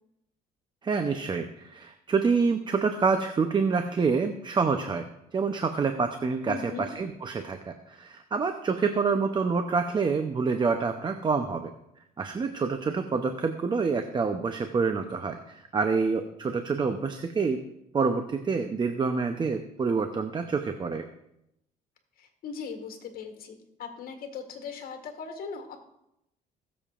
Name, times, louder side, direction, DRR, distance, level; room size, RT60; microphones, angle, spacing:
voice 1, 0.8-5.1 5.3-11.7 12.2-17.6 17.9-21.0, right 5 dB, 25° right, 7 dB, 0.7 m, -27 dB
voice 2, 6.5-6.9 22.2-25.8, left 5 dB, 60° left, 5 dB, 1.8 m, -39 dB
20.0 x 7.2 x 2.5 m, 0.84 s
cardioid pair, 110°, 17 cm